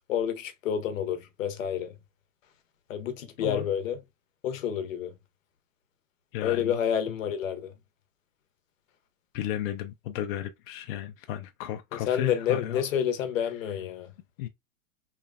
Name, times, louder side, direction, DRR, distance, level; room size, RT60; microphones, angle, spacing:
voice 1, 0.1-1.9 2.9-4.0 4.4-5.1 6.4-7.7 11.9-14.1, left 8 dB, 75° left, 0.8 m, -29 dB
voice 2, 6.3-6.8 9.3-12.9 14.4-14.5, left 11 dB, 45° left, 0.5 m, -34 dB
3.0 x 2.0 x 2.3 m
hypercardioid pair, 120°, 40 cm